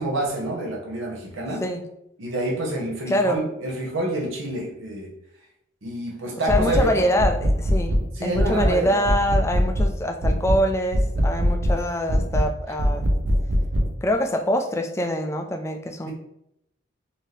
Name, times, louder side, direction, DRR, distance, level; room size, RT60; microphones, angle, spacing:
voice 1, 0.0-1.6 2.2-5.1 5.8-7.1 8.1-9.0, right 1 dB, 85° right, -2 dB, 1.0 m, -27 dB
voice 2, 3.1-3.4 6.5-8.0 8.2-13.1 14.0-16.1, equal, 15° left, 5 dB, 0.3 m, -24 dB
sound 1, 6.5-6.9 7.2-8.0 8.3-8.8 9.0-9.9 10.2-10.6 10.9-11.8 12.1-12.5 12.8-13.9, equal, 55° right, 0.6 m, -21 dB
4.1 x 2.7 x 3.2 m, 0.79 s
head